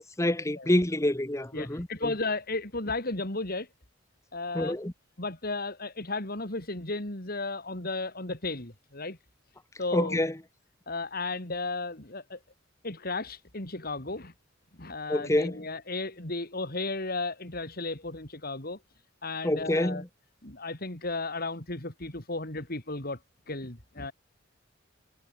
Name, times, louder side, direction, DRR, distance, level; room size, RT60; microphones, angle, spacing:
voice 1, 0.0-2.1 4.5-4.9 9.9-10.3 15.1-15.6 19.4-20.0, left 1 dB, 15° left, 1.3 m, -27 dB
voice 2, 1.5-3.7 4.3-4.8 5.2-9.2 9.8-10.2 10.9-12.4 12.8-14.3 14.8-18.8 19.2-20.0 20.4-23.2 23.5-24.1, left 3 dB, 50° left, 3.9 m, -34 dB
head